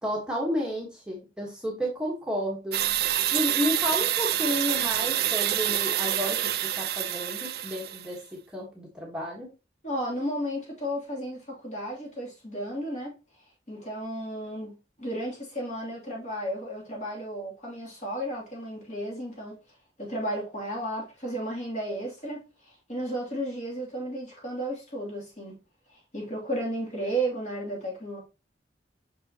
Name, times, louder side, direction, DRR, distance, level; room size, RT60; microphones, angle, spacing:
voice 1, 0.0-2.8 3.3-6.5 6.7-9.5, equal, 5° right, 1.2 m, -31 dB
sound 1, 2.7-8.1, right 12 dB, 60° right, 0.4 m, -27 dB
voice 2, 9.8-13.1 13.7-19.6 20.0-25.6 25.9-28.2, right 1 dB, 40° left, 2.7 m, -33 dB
6.3 x 5.3 x 2.8 m
head